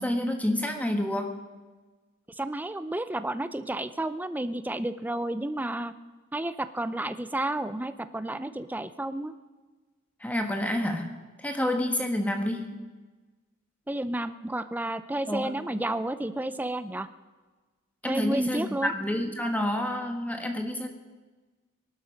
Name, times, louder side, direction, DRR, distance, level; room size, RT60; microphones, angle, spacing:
voice 1, 0.0-1.4 10.2-11.1 11.4-12.8 15.3-15.5 18.0-20.9, left 1 dB, 5° left, 4 dB, 1.3 m, -28 dB
voice 2, 2.4-5.9 6.3-9.3 13.9-17.1 18.1-18.9, right 1 dB, 10° right, 12 dB, 0.5 m, -31 dB
22.5 x 12.0 x 5.2 m, 1.3 s
head